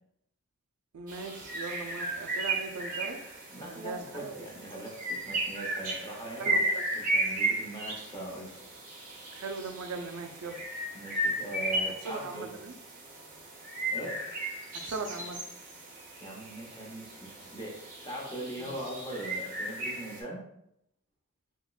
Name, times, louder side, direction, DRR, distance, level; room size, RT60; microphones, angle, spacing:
voice 1, 0.9-3.2 3.6-4.5 6.4-6.8 9.3-10.6 12.0-12.7 14.7-15.4 18.6-18.8, right 4 dB, 85° right, 6 dB, 0.4 m, -39 dB
sound 1, 1.1-20.2, right 1 dB, 40° right, 0.7 m, -35 dB
voice 2, 3.5-6.6 6.9-8.5 10.9-12.6 13.9-14.2 16.2-20.4, right 1 dB, 20° left, -2 dB, 0.7 m, -41 dB
3.5 x 3.0 x 2.3 m, 0.76 s
head